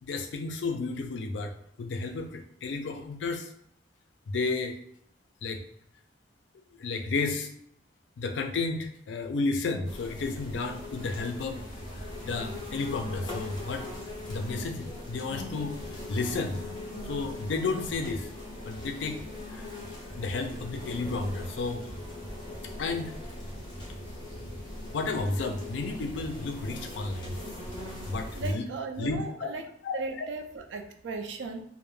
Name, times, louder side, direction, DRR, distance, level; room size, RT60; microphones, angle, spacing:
voice 1, 0.0-3.5 4.3-4.8 5.4-5.6 6.7-7.5 8.2-11.6 11.9-13.9 14.3-16.6 17.0-18.3 18.6-19.2 19.5-19.7 20.2-21.8 22.8-23.2 24.9-27.4 28.1-28.7 29.0-29.5 29.8-30.3, left 3 dB, 75° left, 6 dB, 0.4 m, -32 dB
sound 1, 9.8-28.6, left 1 dB, 25° left, 0.7 m, -40 dB
voice 2, 28.3-29.6 29.9-31.6, right 3 dB, 75° right, 5 dB, 0.3 m, -37 dB
2.1 x 2.1 x 3.0 m, 0.71 s
head